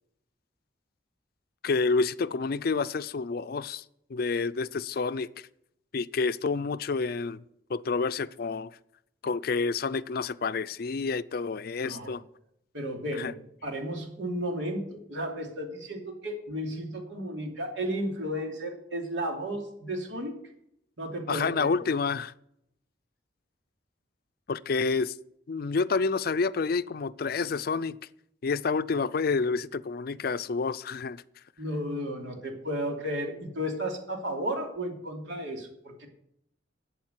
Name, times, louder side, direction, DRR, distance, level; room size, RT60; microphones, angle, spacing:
voice 1, 1.6-3.8 4.1-5.3 5.9-7.4 7.7-8.7 9.2-12.2 13.2-13.3 21.3-22.3 24.5-25.1 25.5-28.0 28.4-31.2, left 4 dB, 55° left, 0.4 m, -29 dB
voice 2, 11.8-12.2 12.7-20.4 21.0-21.8 31.6-36.1, equal, 80° right, 2.8 m, -33 dB
11.5 x 8.1 x 8.1 m
head